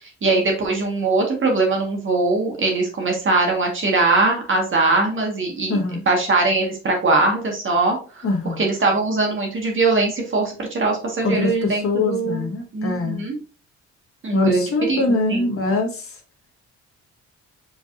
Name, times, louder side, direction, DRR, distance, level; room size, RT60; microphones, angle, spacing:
voice 1, 0.0-5.8 6.0-13.4 14.2-15.4, right 3 dB, 40° right, 1 dB, 1.7 m, -21 dB
voice 2, 5.7-6.0 8.2-8.6 11.2-13.2 14.3-16.2, left 3 dB, 45° left, 2 dB, 1.6 m, -23 dB
5.0 x 3.9 x 2.6 m, 0.36 s
cardioid pair, 90°, 30 cm